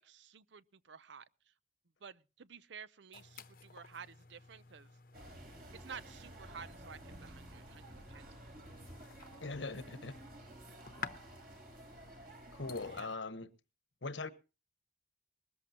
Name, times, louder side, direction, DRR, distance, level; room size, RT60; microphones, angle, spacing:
voice 1, 0.0-1.5 2.0-4.9 5.7-8.2 12.9-13.1, right 6 dB, 70° right, 0.6 m, -52 dB
sound 1, 3.1-13.2, left 4 dB, 50° left, 0.9 m, -53 dB
sound 2, 5.1-13.0, right 1 dB, 50° right, 3.9 m, -53 dB
voice 2, 9.4-10.2 12.5-13.5 14.0-14.3, left 3 dB, 80° left, 1.2 m, -41 dB
21.0 x 13.5 x 2.9 m
head